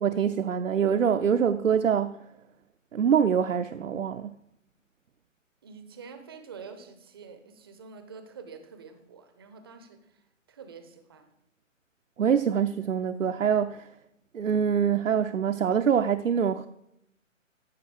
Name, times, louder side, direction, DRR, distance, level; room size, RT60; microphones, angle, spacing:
voice 1, 0.0-2.2 2.9-4.4 12.2-13.9 14.3-16.7, right 7 dB, 75° right, 8 dB, 0.6 m, -25 dB
voice 2, 5.6-10.1 10.5-11.3, right 5 dB, 20° right, 9 dB, 0.6 m, -46 dB
14.5 x 5.2 x 5.0 m, 0.80 s
figure-of-eight pair, 140°, 39 cm